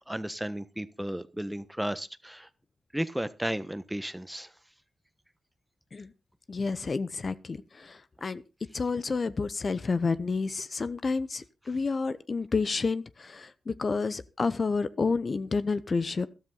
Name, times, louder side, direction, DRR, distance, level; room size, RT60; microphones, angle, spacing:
voice 1, 0.1-2.5 2.9-4.5, right 1 dB, 10° right, 14 dB, 1.2 m, -34 dB
voice 2, 6.5-8.4 8.7-16.3, left 4 dB, 50° left, 14 dB, 0.8 m, -30 dB
13.5 x 12.5 x 4.0 m, 0.30 s
supercardioid pair, 50°, 0 cm